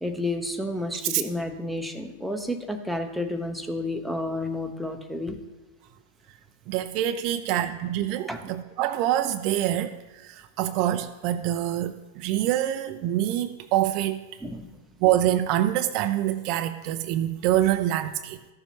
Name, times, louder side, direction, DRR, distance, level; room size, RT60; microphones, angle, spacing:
voice 1, 0.0-5.4 8.3-8.4 14.4-14.7, left 1 dB, ahead, 4 dB, 1.0 m, -31 dB
voice 2, 6.7-14.2 15.0-18.4, right 12 dB, 45° right, 9 dB, 0.5 m, -25 dB
13.5 x 6.8 x 3.0 m, 1.1 s
hypercardioid pair, 95°, 0 cm